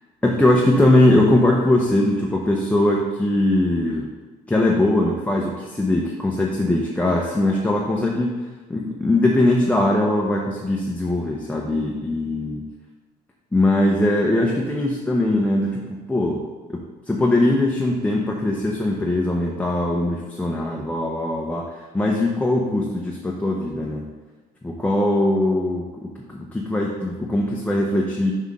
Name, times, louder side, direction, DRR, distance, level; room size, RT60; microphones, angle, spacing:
voice 1, 0.2-4.1 4.5-8.4 8.7-12.6 13.5-16.4 16.7-24.0 24.6-28.3, left 1 dB, 10° left, -2 dB, 0.7 m, -21 dB
5.7 x 5.5 x 3.6 m, 1.3 s
cardioid pair, 110°, 17 cm